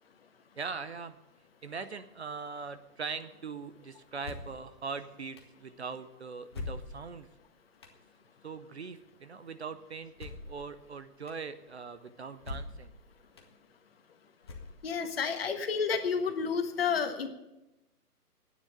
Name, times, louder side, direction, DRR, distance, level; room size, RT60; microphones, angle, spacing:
voice 1, 0.6-1.2 1.6-7.3 8.4-12.9, right 5 dB, 45° right, 11 dB, 0.7 m, -41 dB
sound 1, 4.2-4.6 5.4-5.5 6.5-7.2 7.8-8.0 10.2-10.6 11.3-11.4 12.4-12.9 13.4-13.5 14.4-15.0, left 3 dB, 15° left, 0.8 m, -41 dB
voice 2, 14.8-17.3, left 6 dB, 40° left, 7 dB, 1.3 m, -30 dB
11.0 x 9.5 x 9.1 m, 0.96 s
figure-of-eight pair, 150°, 47 cm